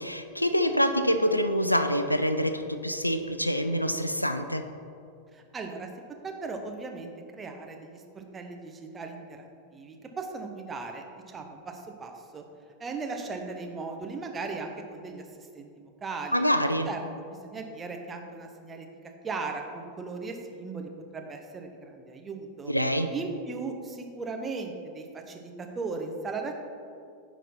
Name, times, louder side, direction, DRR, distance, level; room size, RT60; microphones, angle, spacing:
voice 1, 0.0-4.6 16.3-16.9 22.7-23.1, equal, 90° left, 8 dB, 0.4 m, -26 dB
voice 2, 5.3-5.9 6.2-9.4 9.7-12.4 12.8-15.7 16.0-16.4 16.9-18.9 19.2-22.7 23.1-26.7, right 4 dB, 20° right, 3 dB, 0.8 m, -37 dB
10.0 x 4.1 x 4.2 m, 2.4 s
figure-of-eight pair, 90°, 0 cm